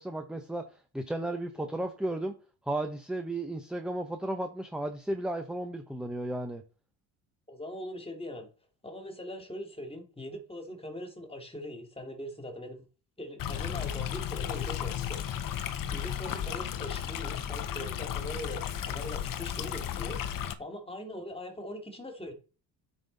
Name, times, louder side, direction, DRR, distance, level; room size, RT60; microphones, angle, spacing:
voice 1, 0.0-2.3 2.7-6.6, right 1 dB, ahead, 0.9 m, -34 dB
voice 2, 7.5-8.5 8.8-12.9 13.2-20.2 20.6-22.3, left 1 dB, 15° left, 2.4 m, -41 dB
Stream, 13.4-20.5, left 10 dB, 50° left, 0.9 m, -34 dB
9.0 x 5.5 x 4.0 m
supercardioid pair, 85°, 43 cm